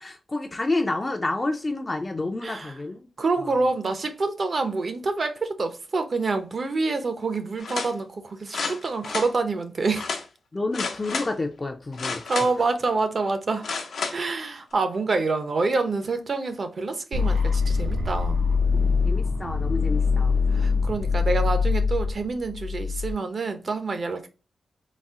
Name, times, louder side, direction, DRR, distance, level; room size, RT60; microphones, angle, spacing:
voice 1, 0.0-3.1 10.5-12.2 19.0-20.4, left 2 dB, 25° left, 0.4 m, -29 dB
voice 2, 2.4-2.8 3.2-10.2 12.3-13.7 14.1-18.4 20.5-24.3, right 3 dB, 50° right, 0.7 m, -27 dB
sound 1, 7.6-7.9 8.5-9.3 9.9-10.2 10.7-11.3 11.9-12.7 13.6-14.2 14.7-14.8, left 4 dB, 80° left, 0.7 m, -31 dB
sound 2, 17.1-23.1, left 5 dB, 85° right, 0.7 m, -23 dB
4.1 x 2.0 x 3.5 m
wide cardioid pair, 95°, 0 cm